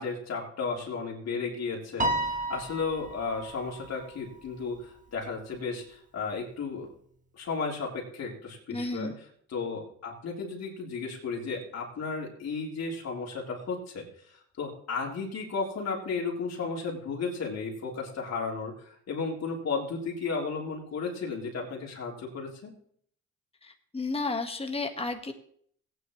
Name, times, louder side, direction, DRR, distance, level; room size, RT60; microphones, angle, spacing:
voice 1, 0.0-6.9 7.3-9.1 9.5-14.0 14.3-22.7, left 4 dB, 60° left, -2 dB, 3.6 m, -34 dB
Piano, 2.0-4.5, right 1 dB, 25° right, 1.5 m, -32 dB
voice 2, 8.7-9.1 23.6-25.3, left 3 dB, 20° left, 5 dB, 1.6 m, -32 dB
18.0 x 9.3 x 3.2 m, 0.63 s
cardioid pair, 90°, 30 cm